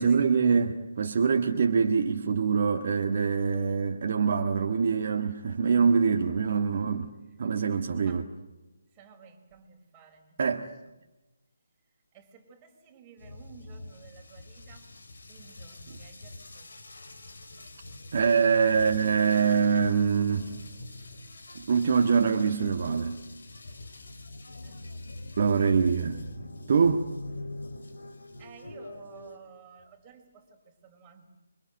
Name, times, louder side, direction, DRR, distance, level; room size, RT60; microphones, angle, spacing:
voice 1, 0.0-7.1 7.4-8.2 10.4-10.7 18.1-20.5 21.6-23.2 25.4-26.2 26.7-27.1, right 5 dB, 45° right, 1.6 m, -24 dB
voice 2, 8.9-10.6 12.1-14.9 15.3-16.8 18.7-18.8 24.6-25.1 28.4-31.3, right 6 dB, 20° right, 5.0 m, -53 dB
sound 1, 13.2-29.4, left 2 dB, 65° left, 4.9 m, -44 dB
28.0 x 25.0 x 8.0 m
figure-of-eight pair, 150°, 0 cm